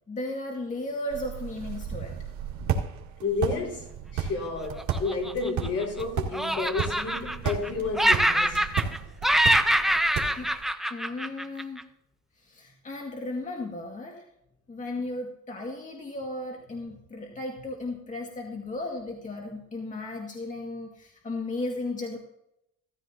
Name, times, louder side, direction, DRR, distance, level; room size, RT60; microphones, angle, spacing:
voice 1, 0.1-2.2 10.4-10.5 10.9-11.8 12.4-14.3 14.7-22.2, left 2 dB, 25° left, 2.1 m, -35 dB
sound 1, 1.1-10.7, right 7 dB, 80° right, 1.9 m, -34 dB
voice 2, 3.2-8.8, left 4 dB, 55° left, 3.9 m, -31 dB
Laughter, 4.8-6.0 6.3-7.7 8.0-9.0 9.2-11.8, right 1 dB, ahead, 0.7 m, -24 dB
16.5 x 13.5 x 2.8 m
cardioid pair, 115°, 29 cm